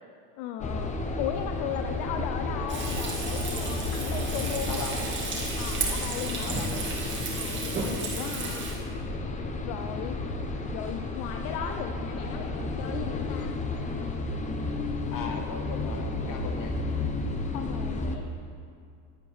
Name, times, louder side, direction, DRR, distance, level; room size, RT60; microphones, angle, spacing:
voice 1, 0.4-4.8 5.6-6.6 7.3-8.7 9.6-10.2 10.7-13.6 17.5-18.3, left 9 dB, 65° left, 6 dB, 0.7 m, -37 dB
sound 1, 0.6-18.2, left 2 dB, 15° left, 0.6 m, -32 dB
Frying (food), 2.7-8.7, right 3 dB, 25° right, 1.9 m, -33 dB
voice 2, 4.7-5.1 6.4-6.9 7.6-7.8 15.1-16.8, left 5 dB, 45° left, 4 dB, 1.3 m, -38 dB
10.5 x 9.1 x 3.4 m, 2.4 s
supercardioid pair, 105°, 45 cm